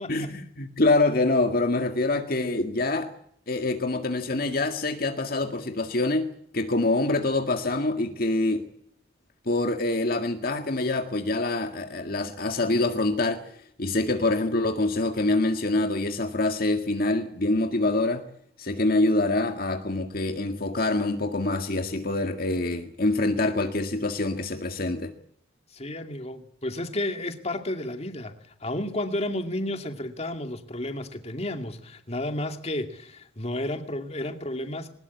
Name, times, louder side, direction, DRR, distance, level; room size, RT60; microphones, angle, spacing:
voice 1, 0.1-3.1 3.5-8.6 9.5-13.4 13.8-18.3 18.6-25.1, left 2 dB, 50° left, 6 dB, 1.9 m, -25 dB
voice 2, 25.7-28.3 28.6-34.9, left 1 dB, 35° left, 7 dB, 2.3 m, -32 dB
22.0 x 20.0 x 8.4 m, 0.64 s
head